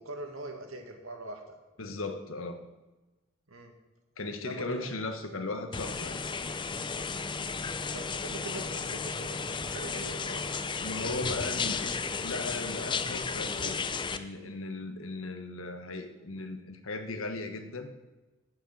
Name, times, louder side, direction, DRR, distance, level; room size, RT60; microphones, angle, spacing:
voice 1, 0.0-1.4 3.5-3.7 4.4-4.9 7.9-10.5, right 1 dB, 85° right, 4 dB, 2.1 m, -42 dB
voice 2, 1.8-2.6 4.2-6.2 10.8-17.9, left 2 dB, 80° left, 7 dB, 1.3 m, -37 dB
sound 1, 5.7-14.2, left 5 dB, 25° left, 0.5 m, -34 dB
9.4 x 9.0 x 7.5 m, 1.1 s
head